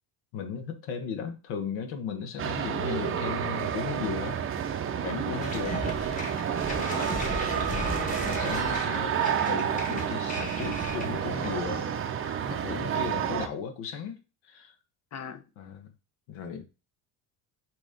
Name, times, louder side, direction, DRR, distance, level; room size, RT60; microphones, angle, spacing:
voice 1, 0.3-4.4 5.0-6.3 7.7-11.9 12.5-14.7 15.6-15.9 16.3-16.6, left 6 dB, 80° left, 1.4 m, -36 dB
sound 1, 2.4-13.5, right 8 dB, 30° right, 0.6 m, -30 dB
sound 2, 5.4-11.7, left 1 dB, 15° left, 1.3 m, -36 dB
voice 2, 12.7-13.0 15.1-15.4, left 6 dB, 35° left, 0.8 m, -39 dB
6.1 x 3.1 x 5.1 m
cardioid pair, 155°, 45 cm